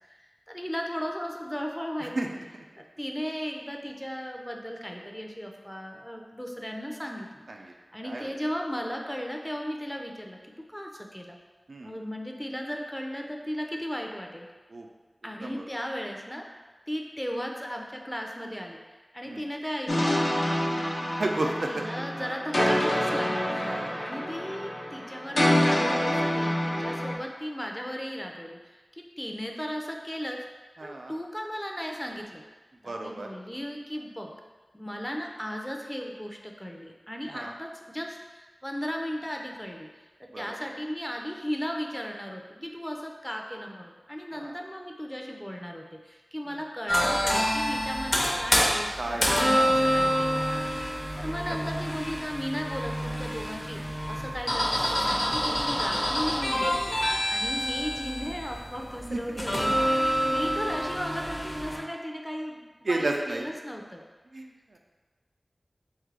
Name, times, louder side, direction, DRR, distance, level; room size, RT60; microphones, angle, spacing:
voice 1, 0.0-2.2 3.0-7.5 7.9-11.4 11.8-14.5 15.2-16.4 16.9-20.1 21.4-30.4 30.8-32.4 32.8-34.3 34.7-50.4 51.2-56.8 57.3-64.0, equal, 10° left, 1 dB, 0.5 m, -36 dB
sound 1, 19.9-27.1, left 1 dB, 75° left, 0.8 m, -27 dB
voice 2, 21.2-21.9 22.1-22.4 23.5-24.0 30.8-31.1 32.8-33.3 37.3-37.5 40.3-40.5 44.3-44.5 46.5-46.6 49.0-49.7 51.5-51.6 56.7-57.3 59.1-59.2 59.5-59.8 60.2-60.4 62.8-63.5 64.3-64.8, right 2 dB, 90° right, 1 dB, 0.4 m, -33 dB
sound 2, 46.9-61.8, equal, 40° left, 0.7 m, -27 dB
3.7 x 3.1 x 3.3 m, 1.3 s
wide cardioid pair, 65°, 0 cm